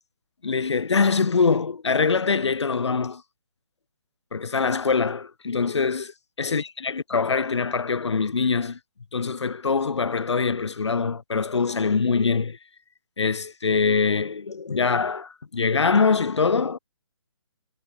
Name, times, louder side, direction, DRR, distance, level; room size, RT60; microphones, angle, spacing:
voice 1, 0.4-3.2 4.3-6.1 6.4-8.8 9.1-12.6 13.2-16.8, left 5 dB, 75° left, 1.7 m, -23 dB
figure-of-eight pair, 145°, 15 cm